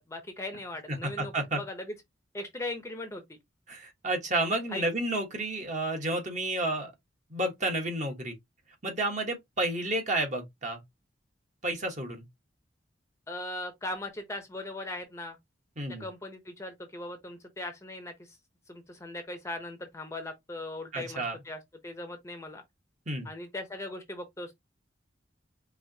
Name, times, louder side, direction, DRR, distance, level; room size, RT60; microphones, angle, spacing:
voice 1, 0.1-1.9 2.3-3.4 4.7-4.8 13.3-15.4 16.0-18.4 18.7-22.6 23.2-24.5, left 2 dB, 15° left, 0.7 m, -39 dB
voice 2, 0.9-1.6 3.7-6.9 7.3-8.3 8.8-10.8 11.6-12.2 15.8-16.0 20.9-21.4 23.1-23.3, right 2 dB, 40° right, 1.2 m, -31 dB
4.6 x 2.7 x 2.7 m
head